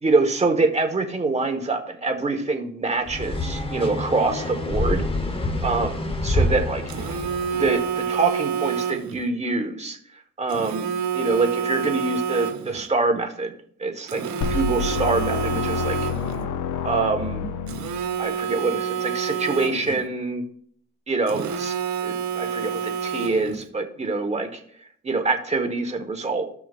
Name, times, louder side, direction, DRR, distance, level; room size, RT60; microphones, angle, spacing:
voice 1, 0.0-5.0 5.6-6.8 7.5-10.0 10.4-10.9 11.1-13.5 13.8-14.2 14.5-16.0 16.8-17.5 18.2-20.4 21.1-21.7 22.0-24.6 25.0-26.5, right 3 dB, 20° right, 4 dB, 1.4 m, -25 dB
sound 1, 3.1-7.9, left 1 dB, 20° left, 1.0 m, -27 dB
Telephone, 6.9-9.2 10.5-12.9 14.1-16.4 17.7-20.1 21.3-23.6, right 7 dB, 70° right, 1.1 m, -28 dB
sound 2, 14.4-18.4, left 6 dB, 80° left, 0.8 m, -28 dB
15.5 x 5.9 x 2.5 m, 0.62 s
cardioid pair, 90°, 30 cm